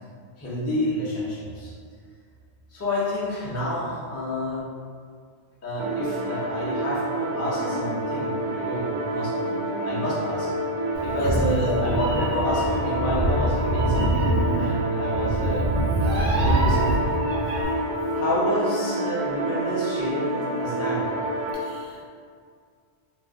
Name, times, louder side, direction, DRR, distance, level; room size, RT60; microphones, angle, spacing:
voice 1, 0.4-1.7 2.7-4.7 5.6-9.3 9.8-10.5 11.0-15.7 16.1-17.1 18.1-20.3 20.6-21.2, equal, 25° left, -8 dB, 0.3 m, -28 dB
sound 1, 5.8-21.5, right 1 dB, 85° right, 1.0 m, -28 dB
Meow, 10.9-17.6, right 1 dB, 50° right, 0.5 m, -25 dB
voice 2, 11.2-11.6 21.5-22.1, left 2 dB, 80° left, -3 dB, 0.9 m, -39 dB
2.4 x 2.1 x 3.5 m, 2.1 s
omnidirectional pair, 1.2 m